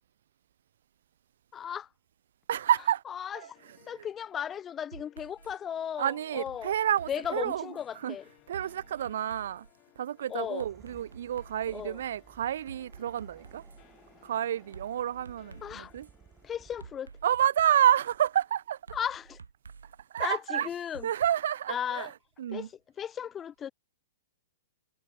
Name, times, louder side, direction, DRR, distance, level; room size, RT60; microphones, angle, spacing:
voice 1, 1.5-1.9 3.2-3.4 3.9-6.7 7.1-8.2 10.3-10.6 11.7-12.0 15.6-15.9 16.4-17.1 18.9-19.4 20.2-21.1 21.7-22.1 22.5-22.7 23.0-23.7, left 9 dB, 20° left, 0.5 m, -35 dB
voice 2, 2.5-3.0 3.3-4.1 6.0-8.2 8.5-9.7 10.0-13.6 14.2-16.1 17.2-18.8 20.1-20.7 21.0-22.7, right 10 dB, 70° right, 0.4 m, -29 dB
sound 1, 3.5-18.9, left 25 dB, 40° left, 6.7 m, -63 dB
sound 2, 4.9-5.6 6.5-7.9 8.5-9.7 10.6-11.9 12.4-13.8 14.7-16.1 16.8-18.0 18.9-21.3, right 5 dB, 90° right, 3.8 m, -50 dB
sound 3, 10.4-17.2, right 8 dB, 20° right, 3.9 m, -58 dB
hypercardioid pair, 120°, 0 cm